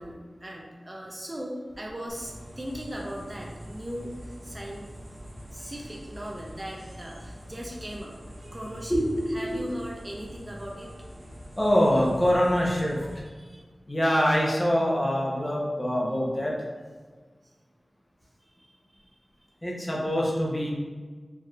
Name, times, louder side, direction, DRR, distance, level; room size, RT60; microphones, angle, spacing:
voice 1, 0.0-4.9 5.5-8.2 8.5-11.2 13.2-13.6 16.1-16.2 18.6-19.1, equal, 25° right, -2 dB, 0.7 m, -39 dB
sound 1, 2.1-13.2, equal, 60° right, 1.1 m, -44 dB
voice 2, 8.9-9.6 11.6-13.0 13.9-16.5 19.6-20.7, equal, 20° left, -3 dB, 1.0 m, -24 dB
4.7 x 2.9 x 2.5 m, 1.4 s
cardioid pair, 45°, 0 cm